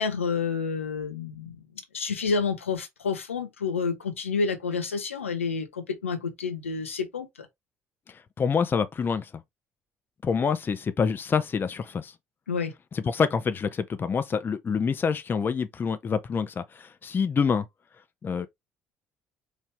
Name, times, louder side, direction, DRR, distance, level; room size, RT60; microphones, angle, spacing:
voice 1, 0.0-1.6 1.9-7.3 12.5-12.7, left 5 dB, 85° left, 0.7 m, -29 dB
voice 2, 8.1-9.3 10.2-12.1 12.9-17.7 18.2-18.5, left 6 dB, 30° left, 0.5 m, -27 dB
4.7 x 2.7 x 3.2 m
figure-of-eight pair, 55°, 7 cm